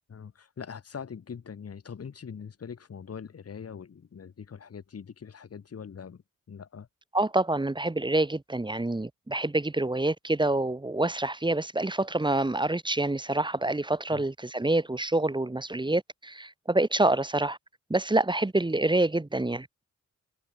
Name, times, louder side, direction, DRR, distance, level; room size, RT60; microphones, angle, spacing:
voice 1, 0.1-6.2 6.5-6.9 14.1-14.2, left 6 dB, 50° left, 1.4 m, -42 dB
voice 2, 7.1-17.6 17.9-19.7, right 2 dB, 15° right, 1.2 m, -27 dB
cardioid pair, 60°, 32 cm